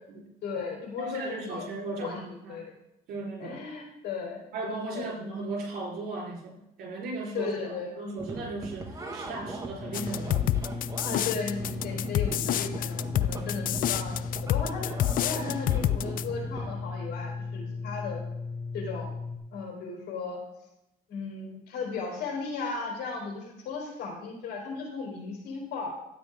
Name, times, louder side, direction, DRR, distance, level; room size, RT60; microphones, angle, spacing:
voice 1, 0.4-1.7 2.0-2.6 3.4-4.4 4.9-5.1 7.3-7.9 11.0-14.9 15.2-18.2 18.7-19.1 19.5-20.4 21.1-25.9, left 4 dB, 75° left, 0 dB, 4.0 m, -36 dB
voice 2, 1.0-2.7 3.1-3.6 4.5-10.5, right 2 dB, 70° right, -1 dB, 4.1 m, -36 dB
sound 1, 8.2-16.8, right 2 dB, 20° right, 1.7 m, -40 dB
sound 2, 9.8-19.4, left 4 dB, ahead, 2.3 m, -36 dB
sound 3, 9.9-16.2, left 13 dB, 55° left, 0.4 m, -28 dB
12.5 x 8.7 x 3.7 m, 0.86 s
cardioid pair, 110°, 17 cm